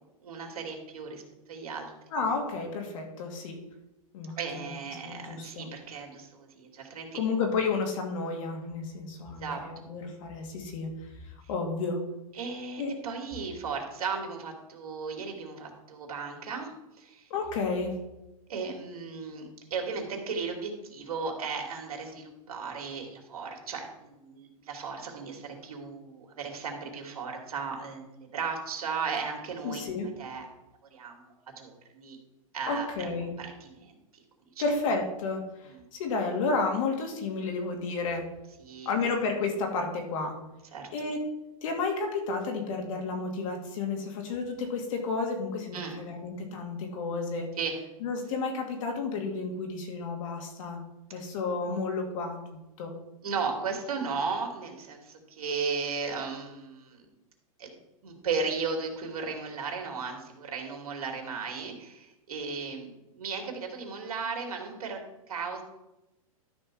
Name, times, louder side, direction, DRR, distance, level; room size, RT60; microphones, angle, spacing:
voice 1, 0.2-1.2 1.5-1.9 4.4-7.2 9.3-9.6 12.3-17.3 18.5-29.8 30.2-30.5 30.9-32.2 32.5-33.1 33.4-34.0 35.7-35.8 38.6-38.9 40.7-40.9 45.7-45.9 47.6-47.7 53.2-57.0 57.6-57.7 58.0-65.0 65.3-65.6, right 5 dB, 80° right, 2 dB, 2.7 m, -35 dB
voice 2, 2.1-3.6 4.1-4.7 5.0-5.7 7.1-11.1 11.5-12.0 12.8-13.0 17.3-18.0 29.6-30.1 32.7-33.3 34.6-38.2 38.9-40.3 40.9-41.2 41.6-47.5 48.0-50.8 51.1-52.4 52.8-52.9, left 4 dB, 60° left, 2 dB, 2.5 m, -31 dB
12.5 x 4.3 x 6.2 m, 0.96 s
hypercardioid pair, 135°, 19 cm